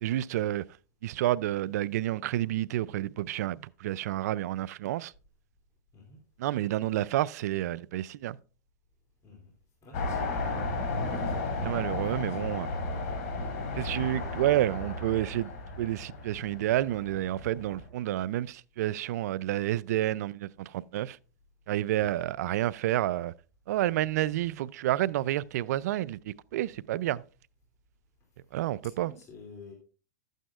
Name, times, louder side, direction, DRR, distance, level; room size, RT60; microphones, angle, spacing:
voice 1, 0.0-0.6 1.0-5.1 6.4-8.4 11.1-11.2 11.6-12.7 13.8-15.5 15.8-21.2 21.7-23.3 23.7-27.2 28.5-29.1, right 14 dB, 70° right, 0.4 m, -29 dB
voice 2, 9.8-10.3 11.2-11.4 12.1-13.0 21.9-22.3 29.0-29.7, left 4 dB, 30° left, 2.6 m, -51 dB
sound 1, 9.9-17.9, left 2 dB, 60° left, 2.6 m, -34 dB
12.0 x 9.1 x 2.4 m
hypercardioid pair, 120°, 9 cm